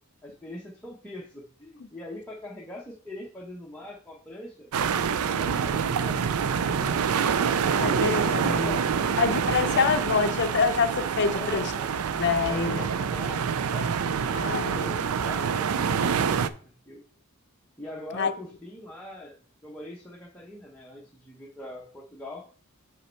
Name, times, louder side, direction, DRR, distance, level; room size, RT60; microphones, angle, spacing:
voice 1, 0.2-4.7 5.2-7.0 7.3-9.1 11.3-17.0 17.8-19.4 19.6-22.5, left 1 dB, 5° left, 1.0 m, -42 dB
sound 1, 4.7-16.5, right 6 dB, 85° right, 0.4 m, -26 dB
voice 2, 7.7-8.8 9.2-11.7 12.2-12.9 14.3-14.9 18.1-18.3, left 5 dB, 55° left, 0.6 m, -26 dB
5.7 x 5.2 x 4.5 m
head